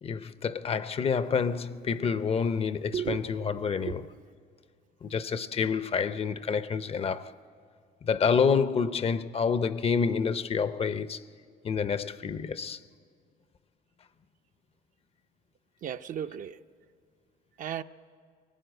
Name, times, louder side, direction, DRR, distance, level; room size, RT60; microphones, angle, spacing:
voice 1, 0.0-4.1 5.0-7.4 8.0-11.2 11.6-12.8, left 6 dB, 35° left, 0.6 m, -28 dB
voice 2, 2.9-4.0 15.8-16.6 17.6-17.8, right 9 dB, 50° right, 0.6 m, -35 dB
22.5 x 18.0 x 9.3 m
cardioid pair, 110°, 17 cm